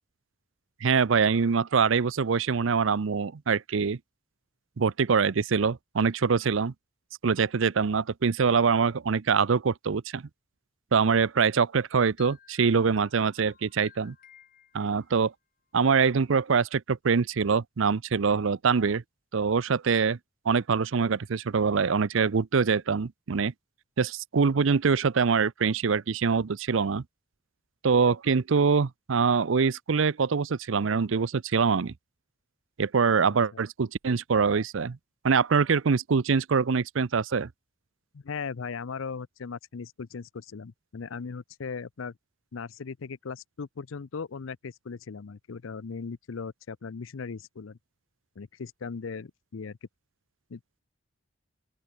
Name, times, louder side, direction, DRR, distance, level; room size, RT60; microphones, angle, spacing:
voice 1, 0.8-4.0 4.8-6.7 7.2-10.2 10.9-14.1 14.7-15.3 15.7-19.0 19.3-20.2 20.5-23.5 24.0-27.0 27.8-31.9 32.8-35.0 35.2-37.5, right 5 dB, 75° right, 0.6 m, -24 dB
sound 1, 11.8-15.3, left 9 dB, 40° left, 3.1 m, -57 dB
voice 2, 38.1-42.1 42.5-47.8 48.4-49.8 50.5-50.6, left 5 dB, 75° left, 0.5 m, -38 dB
open air
head